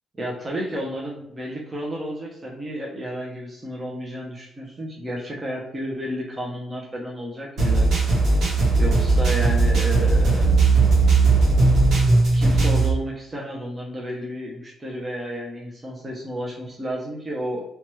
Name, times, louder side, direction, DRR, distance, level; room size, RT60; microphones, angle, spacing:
voice 1, 0.1-7.9 8.8-10.5 12.3-17.6, equal, 25° right, -3 dB, 0.6 m, -32 dB
sound 1, 7.6-12.9, right 3 dB, 70° right, 1.0 m, -18 dB
2.8 x 2.3 x 3.0 m, 0.78 s
cardioid pair, 90°, 0 cm